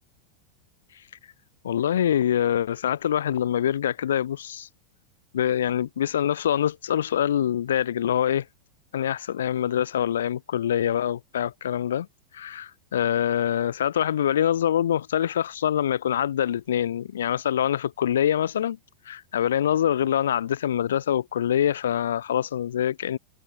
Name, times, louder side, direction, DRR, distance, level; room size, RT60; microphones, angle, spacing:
voice 1, 1.6-4.7 5.3-8.5 8.9-12.1 12.3-18.8 19.1-23.2, left 10 dB, 65° left, 0.8 m, -25 dB
figure-of-eight pair, 90°, 0 cm